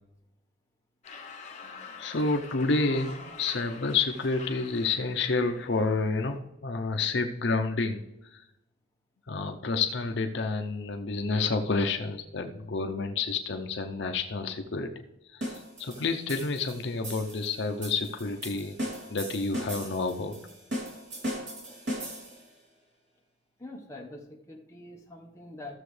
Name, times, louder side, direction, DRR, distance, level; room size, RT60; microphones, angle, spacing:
sound 1, 1.0-6.4, left 4 dB, 35° left, 0.8 m, -46 dB
voice 1, 1.6-8.0 8.3-8.4 9.3-14.9 15.3-18.8 19.1-20.4, left 3 dB, 65° left, 5 dB, 0.6 m, -29 dB
sound 2, 15.4-22.5, equal, 70° right, 2.9 m, -38 dB
voice 2, 23.6-25.7, left 2 dB, 15° left, 0 dB, 1.2 m, -44 dB
14.0 x 6.9 x 3.3 m, 0.92 s
head